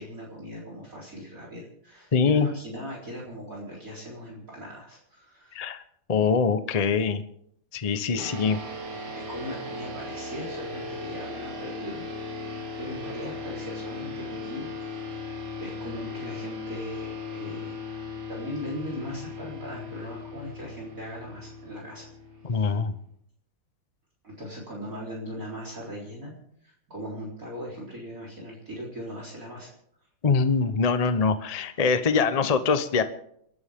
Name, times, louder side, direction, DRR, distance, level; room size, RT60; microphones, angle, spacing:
voice 1, 0.0-5.6 8.1-8.3 9.1-14.7 15.6-22.1 22.5-22.8 24.2-26.3 26.6-29.7, equal, 40° right, -3 dB, 4.4 m, -39 dB
voice 2, 2.1-2.5 5.5-5.8 6.1-7.2 7.7-8.6 22.4-22.9 30.2-33.0, left 5 dB, 60° left, 10 dB, 0.4 m, -23 dB
sound 1, 8.2-23.0, left 3 dB, 90° right, 3.4 m, -37 dB
30.0 x 11.5 x 3.6 m, 0.72 s
omnidirectional pair, 2.3 m